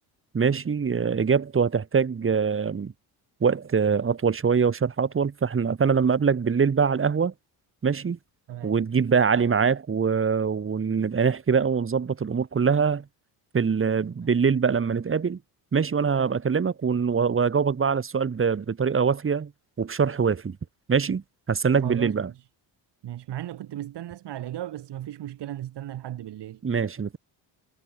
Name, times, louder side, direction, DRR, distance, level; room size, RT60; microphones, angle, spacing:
voice 1, 0.3-2.9 3.4-7.3 7.8-8.2 8.6-13.0 13.5-15.4 15.7-19.5 19.8-20.6 20.9-22.3 26.6-27.2, right 6 dB, 30° right, 2.4 m, -23 dB
voice 2, 21.8-22.3 23.0-26.6, right 12 dB, 70° right, 7.2 m, -36 dB
cardioid pair, 120°, 42 cm